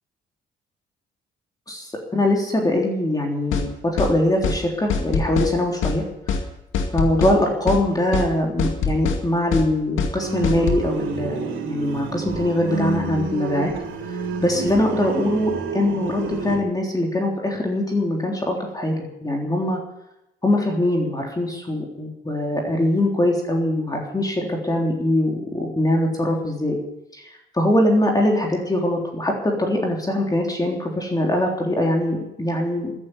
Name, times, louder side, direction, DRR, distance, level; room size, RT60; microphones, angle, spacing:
voice 1, 1.7-6.1 6.9-13.7 14.4-19.8 20.4-26.8 27.1-32.9, left 1 dB, 20° left, 0 dB, 3.6 m, -22 dB
sound 1, 3.5-3.7 4.0-4.1 4.4-4.6 4.9-5.5 5.8-6.0 6.3-6.4 6.7-7.4 7.7-7.8 8.1-8.3 8.6-9.2 9.5-9.7 10.0-10.1 10.4-10.8, left 5 dB, 85° left, 2.2 m, -23 dB
sound 2, 10.2-16.6, right 5 dB, 75° right, 3.6 m, -29 dB
13.5 x 11.0 x 9.7 m, 0.89 s
cardioid pair, 90°, 20 cm